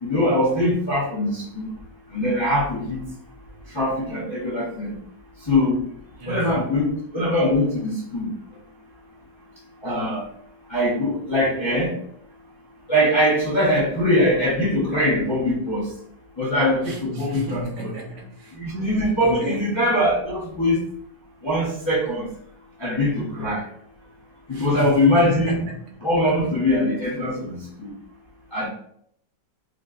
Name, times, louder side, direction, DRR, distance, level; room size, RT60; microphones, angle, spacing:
voice 1, 0.0-1.7 2.1-3.0 3.7-4.9 5.5-5.8 6.3-8.3 9.8-10.2 10.7-11.9 12.9-15.9 16.4-17.9 18.5-20.8 21.4-22.3 22.8-23.6 24.5-25.6 26.0-27.9 28.5-28.7, left 1 dB, 25° left, -6 dB, 0.6 m, -22 dB
voice 2, 6.2-6.5 16.8-18.6 19.2-19.7 24.5-24.9 25.2-25.8, right 1 dB, 75° right, 0 dB, 1.4 m, -34 dB
5.0 x 2.2 x 2.4 m, 0.66 s
omnidirectional pair, 1.8 m